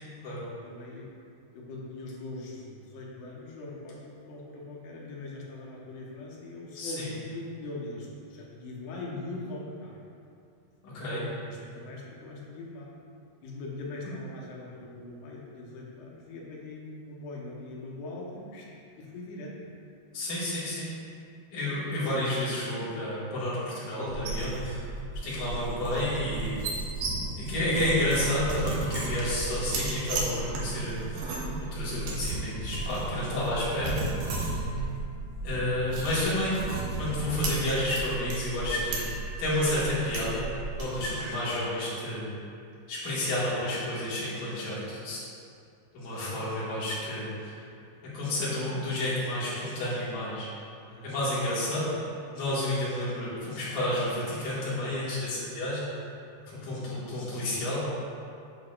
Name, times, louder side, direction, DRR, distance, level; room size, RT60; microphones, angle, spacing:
voice 1, 0.5-1.1 1.5-9.9 10.8-12.9 13.4-18.7 19.0-19.5 22.0-22.1 25.2-25.6 33.3-33.5 34.4-34.9 46.0-46.7 47.9-48.0 50.9-51.1 56.4-56.8, left 2 dB, 80° left, -4 dB, 3.2 m, -42 dB
voice 2, 6.7-7.1 10.8-11.3 14.0-14.1 20.1-20.9 21.5-24.9 25.2-26.6 27.4-31.3 31.7-34.0 35.4-40.5 40.7-42.3 42.9-45.2 45.9-47.6 48.1-50.5 51.0-51.9 52.3-55.9 56.5-57.8, left 1 dB, 60° left, -9 dB, 3.2 m, -30 dB
sound 1, 24.1-41.1, right 3 dB, 80° right, 2.9 m, -34 dB
9.1 x 5.9 x 2.5 m, 2.4 s
omnidirectional pair, 4.7 m